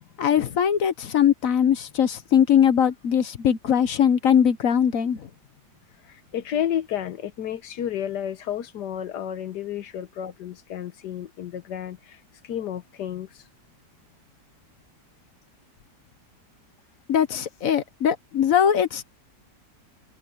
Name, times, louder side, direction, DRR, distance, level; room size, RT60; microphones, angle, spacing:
voice 1, 0.2-5.3 17.1-19.1, left 8 dB, 60° left, 1.3 m, -21 dB
voice 2, 6.0-13.4, left 10 dB, 80° left, 1.5 m, -31 dB
omnidirectional pair, 1.8 m